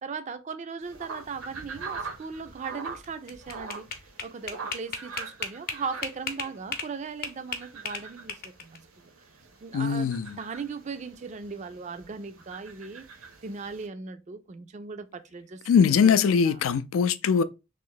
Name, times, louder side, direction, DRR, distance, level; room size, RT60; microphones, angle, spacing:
voice 1, 0.0-3.9 4.2-9.1 9.6-13.1 13.4-16.6, right 5 dB, 35° right, 0.3 m, -38 dB
sound 1, 0.8-13.9, right 4 dB, 80° right, 0.9 m, -44 dB
sound 2, 3.0-6.9 7.2-8.8, left 5 dB, 45° left, 0.7 m, -34 dB
voice 2, 9.7-10.4 15.7-17.4, left 6 dB, 75° left, 0.3 m, -22 dB
3.1 x 2.5 x 3.8 m
head